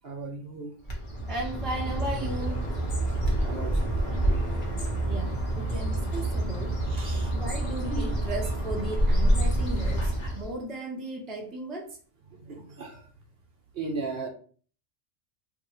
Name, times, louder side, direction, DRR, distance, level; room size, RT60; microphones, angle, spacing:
voice 1, 0.0-0.7 3.4-4.4 6.9-7.3 12.3-13.0 13.7-14.3, right 3 dB, 55° right, 2 dB, 0.9 m, -37 dB
Bird, 0.8-10.6, right 1 dB, 45° left, 1.1 m, -27 dB
voice 2, 1.3-2.7 5.1-6.8 7.3-12.0, right 1 dB, ahead, -2 dB, 0.5 m, -35 dB
2.8 x 2.6 x 4.2 m, 0.42 s
omnidirectional pair, 1.3 m